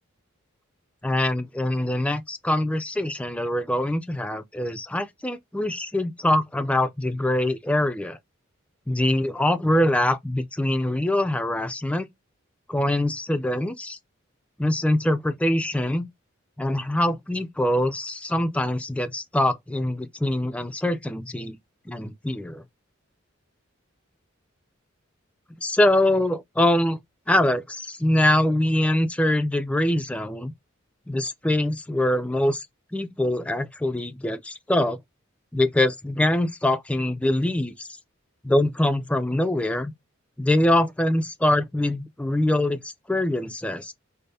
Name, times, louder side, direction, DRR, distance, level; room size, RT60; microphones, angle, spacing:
voice 1, 1.0-8.2 8.9-12.1 12.7-14.0 14.6-16.1 16.6-21.6 21.9-22.6 25.6-27.0 27.3-30.5 31.1-32.7 32.9-35.0 35.5-37.9 38.4-39.9 40.4-43.9, left 1 dB, 5° left, 0.3 m, -24 dB
3.3 x 2.0 x 3.9 m
head